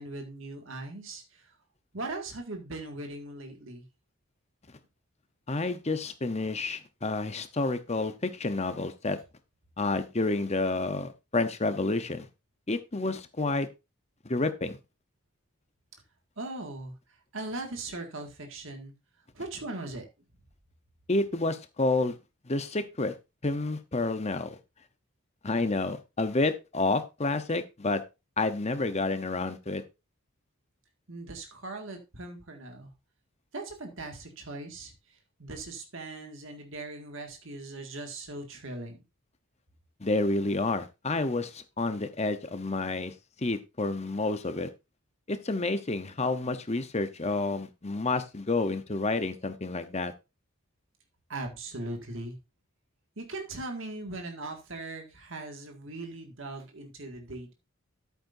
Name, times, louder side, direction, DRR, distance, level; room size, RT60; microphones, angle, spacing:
voice 1, 0.0-1.5 1.9-3.9 16.4-17.0 17.3-18.9 19.3-20.1 31.1-32.9 33.5-39.0 51.3-52.4 53.2-57.5, right 2 dB, 60° right, 2.0 m, -39 dB
voice 2, 5.5-9.2 9.8-12.3 12.7-13.7 14.2-14.8 21.1-22.2 22.5-23.1 23.4-24.6 25.4-28.0 28.4-29.8 40.0-44.7 45.3-50.1, left 2 dB, 30° left, 0.9 m, -29 dB
11.0 x 8.7 x 2.7 m
head